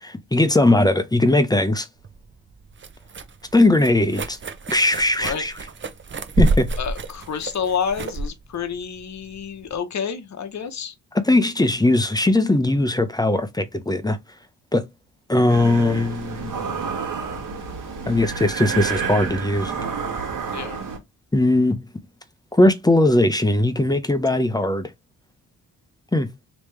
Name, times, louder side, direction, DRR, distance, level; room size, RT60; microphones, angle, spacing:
voice 1, 0.0-1.9 3.5-4.4 4.7-5.6 6.4-6.7 11.1-14.2 14.7-14.9 15.3-16.6 18.1-19.7 21.3-21.9 22.5-24.9 26.1-26.3, left 1 dB, 10° left, 0.7 m, -19 dB
sound 1, 2.0-9.8, right 2 dB, 30° right, 0.6 m, -28 dB
voice 2, 6.8-10.9 20.5-20.8, left 7 dB, 50° left, 0.9 m, -29 dB
sound 2, 15.5-21.0, right 5 dB, 55° right, 1.4 m, -29 dB
3.3 x 3.0 x 3.2 m
cardioid pair, 70°, 37 cm